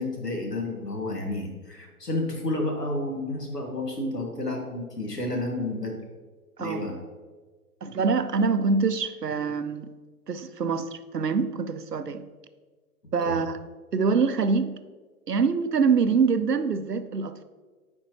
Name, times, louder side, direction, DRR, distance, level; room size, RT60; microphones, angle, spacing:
voice 1, 0.0-6.0 6.6-6.9 13.2-13.4, left 2 dB, 85° left, 2 dB, 1.6 m, -30 dB
voice 2, 7.8-9.9 10.3-12.2 13.1-13.6 13.9-14.8 15.3-17.4, right 5 dB, 90° right, 11 dB, 0.6 m, -25 dB
9.7 x 4.4 x 2.9 m, 1.4 s
figure-of-eight pair, 120°, 47 cm